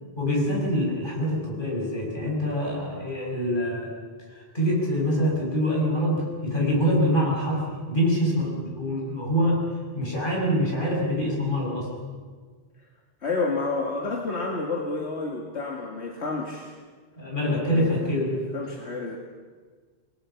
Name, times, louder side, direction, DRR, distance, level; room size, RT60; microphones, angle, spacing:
voice 1, 0.2-3.9 4.3-9.6 9.9-11.9 17.2-18.4, equal, 50° left, -2 dB, 6.9 m, -25 dB
voice 2, 13.2-16.7 17.4-17.9 18.5-19.2, left 3 dB, 80° left, 0 dB, 2.2 m, -30 dB
28.0 x 20.5 x 5.8 m, 1.5 s
omnidirectional pair, 1.1 m